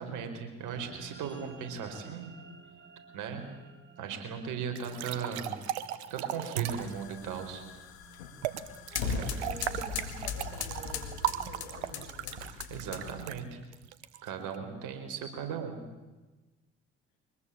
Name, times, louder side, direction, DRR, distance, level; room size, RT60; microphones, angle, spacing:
voice 1, 0.0-2.3 3.1-3.4 4.0-5.6 6.1-7.6 9.1-9.3 12.7-13.6 14.2-15.9, right 6 dB, 70° right, 6 dB, 4.9 m, -37 dB
sound 1, 0.6-11.3, right 5 dB, 35° right, 4.5 m, -55 dB
sound 2, 4.7-7.0 8.4-14.6, right 12 dB, 90° right, 1.1 m, -36 dB
sound 3, 6.6-13.3, left 6 dB, 90° left, 2.1 m, -39 dB
voice 2, 8.9-12.5 14.6-15.0, left 2 dB, 70° left, 2 dB, 6.4 m, -49 dB
24.0 x 20.5 x 8.8 m, 1.2 s
hypercardioid pair, 55°, 32 cm